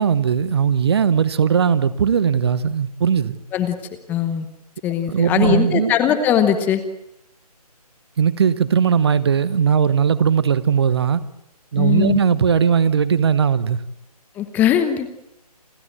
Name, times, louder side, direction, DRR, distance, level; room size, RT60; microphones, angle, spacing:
voice 1, 0.0-3.4 5.1-5.9 8.2-11.2 11.7-13.8, right 7 dB, 40° right, 1.1 m, -18 dB
voice 2, 4.1-4.5 4.8-6.8 11.8-12.2 14.4-15.1, left 9 dB, 10° left, 0.9 m, -20 dB
28.5 x 12.5 x 8.9 m
figure-of-eight pair, 155°, 20 cm